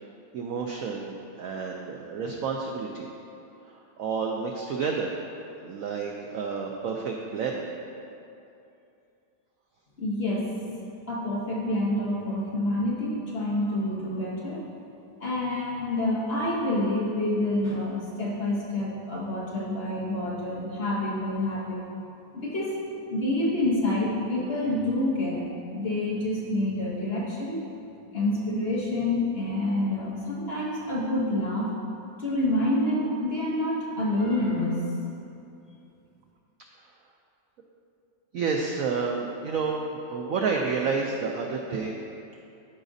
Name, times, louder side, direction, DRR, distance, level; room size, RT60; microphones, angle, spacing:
voice 1, 0.3-3.1 3.7-5.1 5.6-7.7 38.3-41.9, right 5 dB, 85° right, 1 dB, 0.7 m, -30 dB
voice 2, 10.0-10.5 11.1-14.6 15.2-21.8 22.3-22.8 23.1-25.4 25.7-27.6 28.1-31.7 32.2-34.9, left 1 dB, 45° left, -6 dB, 0.9 m, -27 dB
13.0 x 4.9 x 2.6 m, 2.7 s
omnidirectional pair, 2.0 m